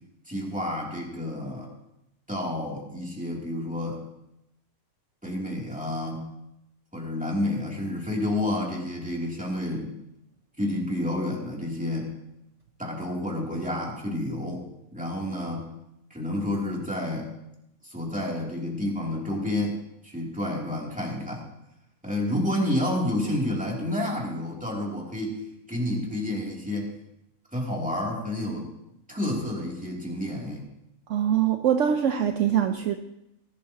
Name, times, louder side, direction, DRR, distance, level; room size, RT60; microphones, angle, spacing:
voice 1, 0.3-1.7 2.3-4.0 5.2-6.3 6.9-9.9 10.6-12.1 12.8-15.7 16.1-17.3 17.8-21.5 22.0-25.4 25.7-26.9 27.5-28.7 29.1-30.6, left 1 dB, 5° right, -3 dB, 2.7 m, -30 dB
voice 2, 31.1-32.9, right 9 dB, 65° right, 6 dB, 0.9 m, -23 dB
19.5 x 12.0 x 2.9 m, 0.86 s
omnidirectional pair, 1.5 m